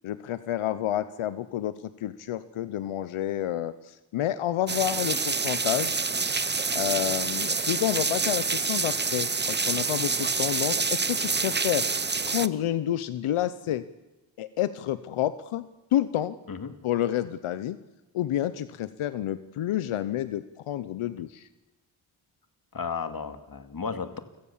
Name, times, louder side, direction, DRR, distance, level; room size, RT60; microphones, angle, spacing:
voice 1, 0.0-6.0 6.7-11.9 12.2-13.8 14.4-15.6 15.9-16.4 16.8-17.8 18.1-21.5, left 12 dB, 90° left, 14 dB, 0.9 m, -29 dB
sound 1, 4.7-12.5, right 4 dB, 20° right, 0.9 m, -27 dB
voice 2, 22.7-24.2, left 5 dB, 45° left, 9 dB, 2.4 m, -34 dB
29.0 x 17.5 x 7.3 m, 1.0 s
cardioid pair, 55°, 48 cm